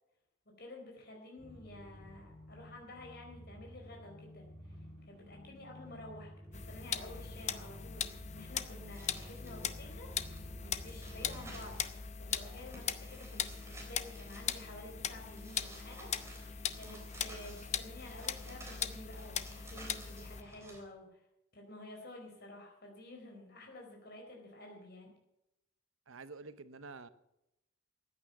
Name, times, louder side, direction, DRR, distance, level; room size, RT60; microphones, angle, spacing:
voice 1, 0.6-4.5 5.1-8.1 8.3-11.8 12.2-21.2 21.5-25.1, left 1 dB, 50° left, 1 dB, 4.3 m, -51 dB
sound 1, 1.4-11.8, equal, 35° right, 7.8 m, -52 dB
sound 2, 6.5-20.4, left 8 dB, 35° left, 0.7 m, -40 dB
sound 3, 8.8-20.8, right 1 dB, 15° right, 3.6 m, -55 dB
voice 2, 26.1-27.1, right 3 dB, 85° right, 14 dB, 0.9 m, -48 dB
14.5 x 9.5 x 7.6 m, 0.88 s
head